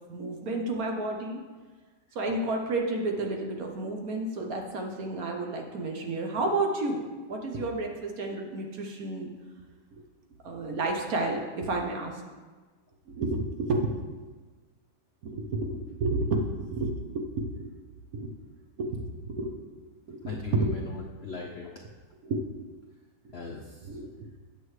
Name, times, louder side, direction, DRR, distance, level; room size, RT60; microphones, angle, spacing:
voice 1, 0.1-1.4 2.1-9.3 9.9-10.0 10.4-12.2 13.1-13.9 15.2-17.6 18.1-18.3 18.8-19.5 20.1-20.7 22.2-22.4 23.2-23.3 23.8-24.3, right 2 dB, 60° right, 2 dB, 1.2 m, -31 dB
voice 2, 20.2-21.8 23.3-23.9, left 5 dB, 65° left, -1 dB, 0.6 m, -38 dB
8.6 x 7.5 x 3.2 m, 1.4 s
omnidirectional pair, 1.9 m